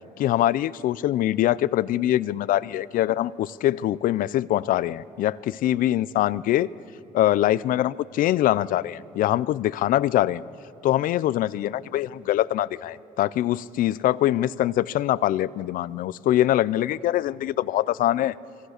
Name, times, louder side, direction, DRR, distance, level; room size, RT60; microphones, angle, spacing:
voice 1, 0.2-6.7 7.1-10.4 10.8-18.3, left 13 dB, 70° left, 19 dB, 0.6 m, -23 dB
27.0 x 23.5 x 6.6 m, 2.5 s
cardioid pair, 95°, 15 cm